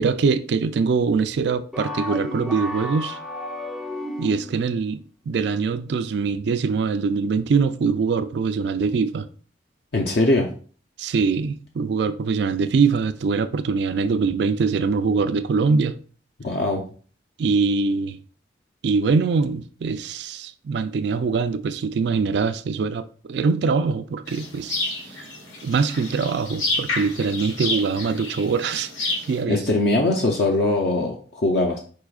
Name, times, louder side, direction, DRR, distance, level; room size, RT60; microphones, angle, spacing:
voice 1, 0.0-3.2 4.2-9.3 11.0-16.0 17.4-18.2 18.8-24.8 25.0-25.2 25.6-28.9 29.3-29.6, right 5 dB, 60° right, 0.3 m, -23 dB
sound 1, 1.7-4.6, left 1 dB, ahead, 0.5 m, -32 dB
voice 2, 9.9-10.5 16.4-16.8 29.5-31.8, left 2 dB, 60° left, 0.6 m, -21 dB
sound 2, 24.3-29.4, left 2 dB, 75° left, 1.3 m, -29 dB
4.8 x 4.7 x 2.4 m
head